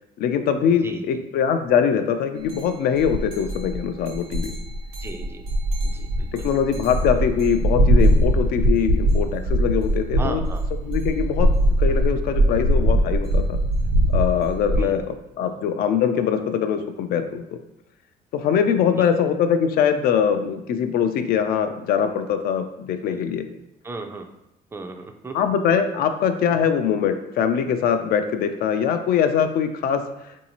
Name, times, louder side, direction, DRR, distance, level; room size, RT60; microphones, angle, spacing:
voice 1, 0.2-4.5 6.4-10.4 10.8-11.5 11.8-13.6 14.1-17.6 18.3-23.4 25.3-30.0, left 7 dB, 65° left, 8 dB, 0.4 m, -22 dB
sound 1, 2.5-2.6 3.0-14.8, right 1 dB, 80° right, 1.0 m, -21 dB
voice 2, 5.0-5.5 5.8-6.3 10.2-10.6 14.8-14.9 15.4-15.5 19.0-19.1 23.1-23.2 23.8-24.3 24.7-25.3, right 3 dB, 15° right, 5 dB, 0.3 m, -35 dB
3.9 x 2.7 x 2.9 m, 0.86 s
cardioid pair, 110°, 17 cm